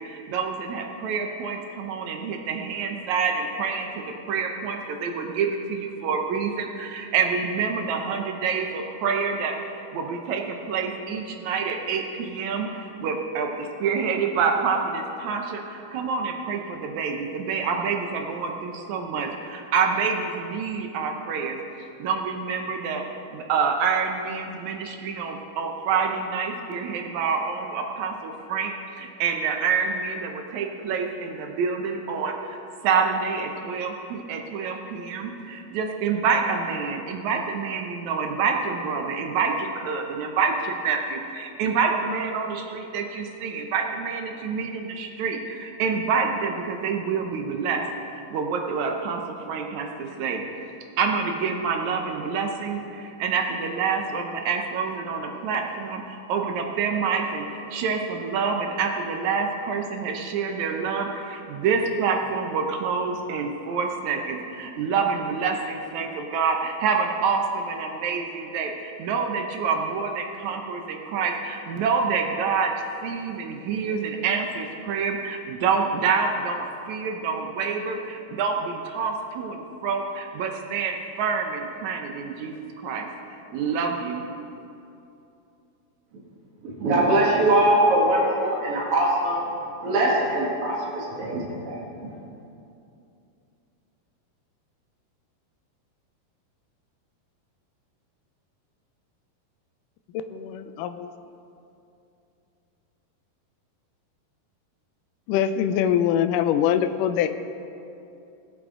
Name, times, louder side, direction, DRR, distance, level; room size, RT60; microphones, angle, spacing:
voice 1, 0.0-9.6 9.9-21.6 22.0-23.0 23.3-32.6 32.8-47.8 48.3-50.4 51.0-72.7 73.0-82.5 82.8-84.2, right 5 dB, 75° right, 3 dB, 1.7 m, -27 dB
voice 2, 86.6-89.4 89.8-92.1, right 1 dB, 50° right, -4 dB, 2.0 m, -22 dB
voice 3, 100.3-101.1 105.3-107.3, left 9 dB, 85° left, 9 dB, 1.9 m, -23 dB
21.0 x 8.5 x 3.8 m, 2.7 s
omnidirectional pair, 4.4 m